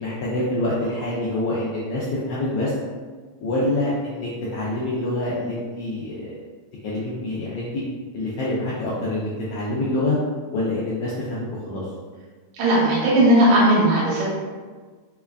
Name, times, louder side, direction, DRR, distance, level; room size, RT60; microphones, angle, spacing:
voice 1, 0.0-2.7 3.4-6.4 6.8-7.8 8.1-10.2 10.5-11.9, left 1 dB, 80° left, -7 dB, 1.4 m, -26 dB
voice 2, 12.5-14.3, right 1 dB, 85° right, -6 dB, 2.4 m, -17 dB
5.0 x 2.3 x 2.3 m, 1.5 s
omnidirectional pair, 3.3 m